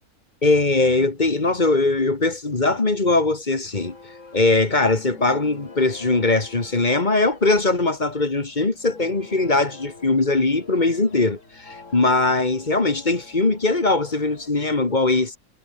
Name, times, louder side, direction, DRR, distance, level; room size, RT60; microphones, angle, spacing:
voice 1, 0.4-4.0 4.3-15.4, left 3 dB, 30° left, 1.9 m, -21 dB
sound 1, 3.6-14.5, left 3 dB, 55° left, 3.4 m, -46 dB
omnidirectional pair, 1.5 m